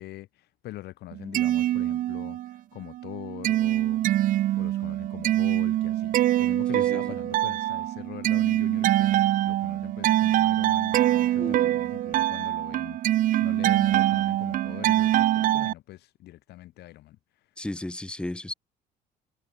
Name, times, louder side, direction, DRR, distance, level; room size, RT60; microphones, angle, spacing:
voice 1, 0.0-4.0 4.5-17.2, left 16 dB, 75° left, 4.7 m, -43 dB
sound 1, 1.1-2.6 2.9-15.7, right 13 dB, 55° right, 0.4 m, -24 dB
voice 2, 6.7-7.1 11.4-11.8 17.6-18.5, left 1 dB, 5° left, 0.8 m, -35 dB
cardioid pair, 110°, 17 cm